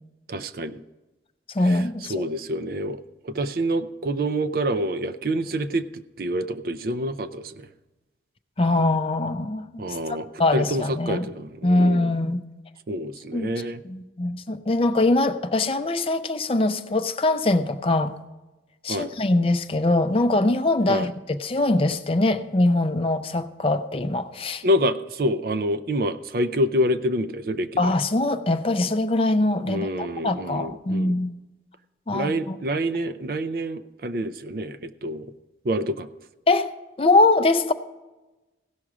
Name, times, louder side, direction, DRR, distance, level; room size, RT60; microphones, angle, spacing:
voice 1, 0.3-0.8 1.7-1.8 2.1-5.8 6.2-7.7 9.8-10.3 10.5-12.1 12.9-13.8 18.9-19.1 20.9-21.1 24.6-27.7 29.6-31.2 32.1-35.3 35.6-36.1, equal, 50° right, 0.5 m, -27 dB
voice 2, 1.5-2.3 8.6-9.8 10.4-11.3 11.6-12.4 13.3-13.5 13.8-18.1 18.8-24.6 27.8-31.4 32.1-32.6 36.5-36.7 37.0-37.7, left 2 dB, 30° left, 0.5 m, -22 dB
16.0 x 6.1 x 4.9 m
head